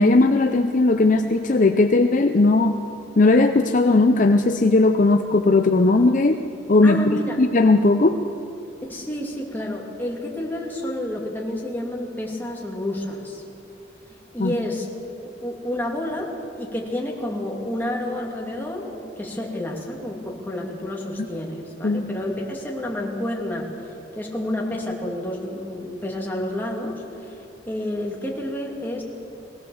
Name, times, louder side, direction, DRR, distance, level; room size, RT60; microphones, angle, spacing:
voice 1, 0.0-2.8 3.2-6.4 6.7-8.2 14.4-14.5 21.8-22.0, left 2 dB, 45° left, 6 dB, 0.6 m, -17 dB
voice 2, 6.8-7.4 8.8-13.4 14.3-14.9 15.2-23.7 24.2-29.0, left 1 dB, 10° left, -2 dB, 2.6 m, -30 dB
21.5 x 17.0 x 7.1 m, 2.8 s
head